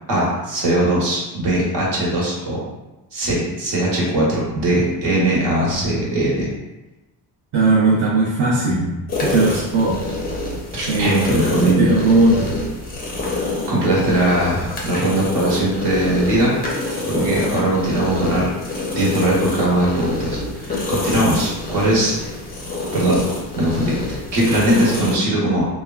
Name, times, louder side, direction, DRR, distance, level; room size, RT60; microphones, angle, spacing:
voice 1, 0.1-2.6 3.1-6.5 10.7-11.8 13.7-16.5 17.1-18.5 18.9-22.1 22.9-23.2 23.5-25.7, right 1 dB, 60° right, -5 dB, 1.1 m, -20 dB
voice 2, 7.5-8.9 9.2-10.0 10.9-11.2 11.6-12.5, right 3 dB, 45° right, -7 dB, 0.6 m, -17 dB
sound 1, 9.1-25.2, left 2 dB, 20° left, 0.5 m, -27 dB
3.2 x 2.2 x 2.3 m, 1.0 s
cardioid pair, 150°, 47 cm